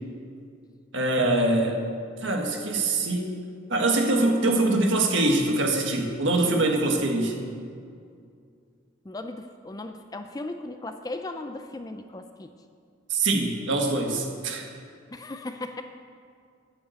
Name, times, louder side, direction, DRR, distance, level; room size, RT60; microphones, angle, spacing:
voice 1, 0.9-1.8 2.2-3.3 3.7-7.4 13.1-14.7, right 2 dB, 60° right, 1 dB, 1.6 m, -23 dB
voice 2, 9.0-12.5 15.1-15.8, left 2 dB, 20° left, 7 dB, 0.4 m, -37 dB
9.8 x 8.5 x 7.8 m, 2.3 s
head